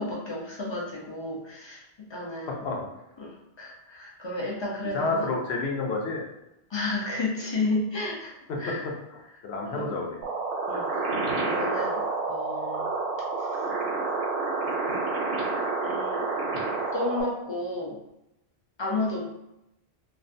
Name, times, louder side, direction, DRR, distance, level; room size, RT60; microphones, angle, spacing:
voice 1, 0.0-1.8 2.1-2.6 3.2-5.3 6.7-8.3 8.6-8.8 9.7-9.9 10.7-11.1 11.4-12.0 12.3-12.9 13.4-13.7 15.8-16.3 16.9-18.0 18.8-19.3, left 2 dB, 45° left, -4 dB, 0.3 m, -32 dB
voice 2, 2.5-2.9 4.9-6.2 8.5-10.2, left 3 dB, 75° left, 0 dB, 0.8 m, -30 dB
sound 1, 10.2-17.2, right 3 dB, 70° right, 0.8 m, -29 dB
2.5 x 2.1 x 2.5 m, 0.87 s
omnidirectional pair, 1.1 m